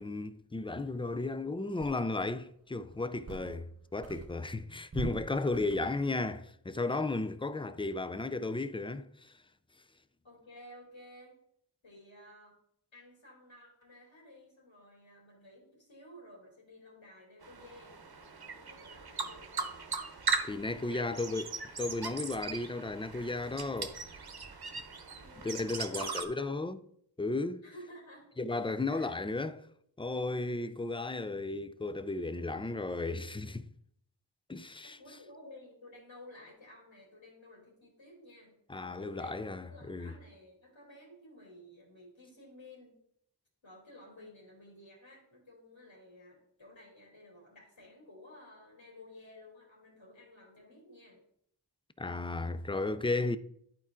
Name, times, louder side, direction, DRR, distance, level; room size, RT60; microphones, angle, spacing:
voice 1, 0.0-9.3 20.5-21.5 21.8-24.0 25.4-26.8 27.2-27.6 28.4-29.6 30.0-33.7 34.5-35.0 38.7-40.1 52.0-53.4, left 2 dB, 15° left, 0.3 m, -34 dB
sound 1, 1.2-1.3 1.8-2.4 2.9-3.8 4.0-6.0, right 4 dB, 35° right, 0.6 m, -44 dB
voice 2, 10.2-11.4 11.8-12.6 12.9-17.9 18.5-19.8 20.3-21.2 24.9-25.0 25.2-26.8 27.6-28.3 28.9-29.2 34.8-43.0 43.6-51.2, left 1 dB, 85° left, 3.3 m, -54 dB
sound 2, 17.4-26.2, right 4 dB, 55° right, 0.9 m, -39 dB
11.0 x 4.4 x 3.7 m
wide cardioid pair, 65°, 45 cm